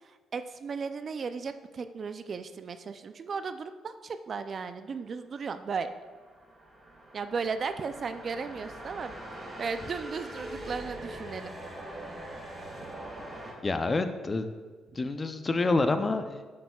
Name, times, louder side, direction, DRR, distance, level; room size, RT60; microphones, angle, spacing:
voice 1, 0.0-5.9 7.1-9.1 9.6-11.5 12.7-13.1 14.9-15.0, right 5 dB, 45° right, 10 dB, 0.4 m, -36 dB
sound 1, 5.8-13.5, right 1 dB, 25° right, 2.1 m, -43 dB
voice 2, 13.6-14.5 15.0-16.5, left 3 dB, 30° left, 9 dB, 0.5 m, -28 dB
8.6 x 7.9 x 2.3 m, 1.4 s
cardioid pair, 90°, 0 cm